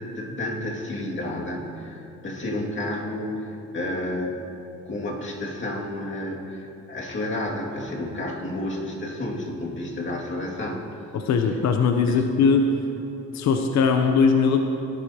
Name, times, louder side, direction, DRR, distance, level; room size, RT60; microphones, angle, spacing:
voice 1, 0.0-4.4 4.8-10.8 12.1-12.2, left 1 dB, 40° left, -2 dB, 2.3 m, -31 dB
voice 2, 11.1-12.8 13.3-14.6, left 5 dB, 65° left, 5 dB, 0.8 m, -20 dB
18.0 x 10.5 x 2.9 m, 2.9 s
cardioid pair, 90°, 30 cm